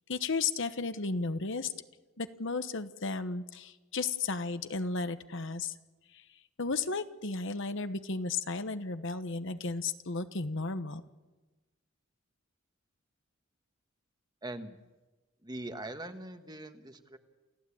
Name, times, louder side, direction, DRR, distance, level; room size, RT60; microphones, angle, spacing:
voice 1, 0.1-1.7 2.2-5.7 6.1-6.2 6.6-11.0, left 4 dB, 65° left, 10 dB, 1.2 m, -34 dB
voice 2, 14.4-14.8 15.4-17.2, right 1 dB, 20° right, 7 dB, 1.4 m, -42 dB
29.0 x 15.5 x 8.6 m, 1.2 s
head